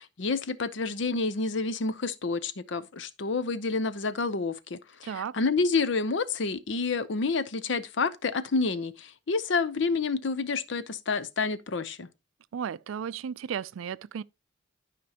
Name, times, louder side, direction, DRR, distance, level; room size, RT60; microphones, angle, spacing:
voice 1, 0.0-4.8 5.2-12.1, left 4 dB, 65° left, 0.6 m, -29 dB
voice 2, 5.0-5.4 12.5-14.2, right 7 dB, 85° right, 0.4 m, -34 dB
12.5 x 5.1 x 2.8 m
head